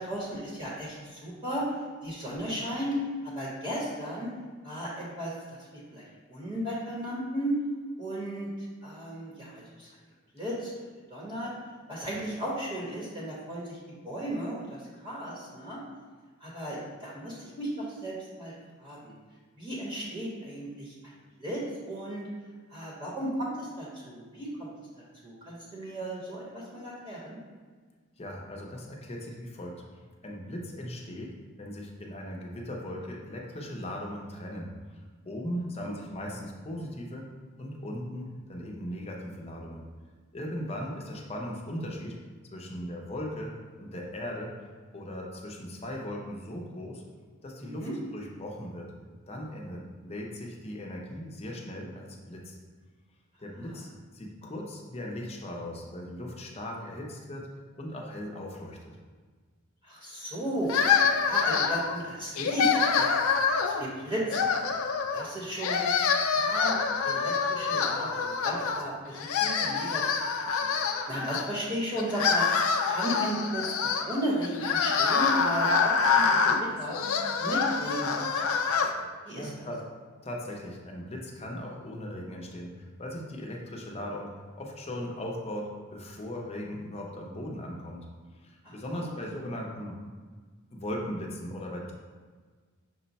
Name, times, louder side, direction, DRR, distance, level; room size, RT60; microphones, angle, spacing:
voice 1, 0.0-1.6 2.0-2.9 3.2-4.3 4.6-5.6 5.9-6.0 6.3-7.5 8.0-8.5 8.8-9.9 10.3-10.7 11.1-11.5 11.9-13.8 14.0-15.8 16.4-18.5 18.8-19.1 19.6-21.1 21.4-22.2 22.7-24.7 25.2-27.4 35.8-35.9 47.6-47.9 53.6-53.8 59.8-60.7 61.1-63.2 63.6-64.7 65.1-65.9 66.3-66.8 67.0-70.0 70.3-70.7 71.1-76.9 77.4-78.6 79.3-79.5 88.6-89.1, right 1 dB, 25° right, -7 dB, 1.0 m, -35 dB
voice 2, 28.2-29.8 30.2-31.3 31.6-34.7 35.2-37.3 37.6-39.9 40.3-42.1 42.5-43.5 43.8-44.5 44.9-47.0 47.4-47.9 48.1-48.9 49.3-52.6 53.4-53.9 54.1-57.5 57.7-58.8 79.3-79.8 80.2-84.3 84.6-88.0 88.4-90.0 90.7-91.9, equal, 30° left, -1 dB, 0.7 m, -38 dB
sound 1, 60.7-62.0 62.4-63.8 64.3-65.3 65.6-68.8 69.1-71.4 72.0-78.9, left 5 dB, 80° left, 0.4 m, -26 dB
6.0 x 2.2 x 4.0 m, 1.5 s
head